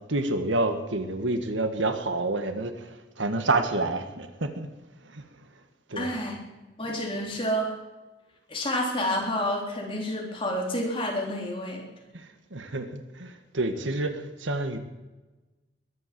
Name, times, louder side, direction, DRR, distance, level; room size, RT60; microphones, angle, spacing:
voice 1, 0.0-4.7 5.0-5.4 5.9-6.1 12.1-14.8, right 2 dB, 85° right, 8 dB, 1.6 m, -29 dB
voice 2, 6.0-6.4 6.8-7.7 8.5-11.8, equal, 30° left, 0 dB, 3.6 m, -29 dB
21.5 x 8.1 x 7.6 m, 1.1 s
head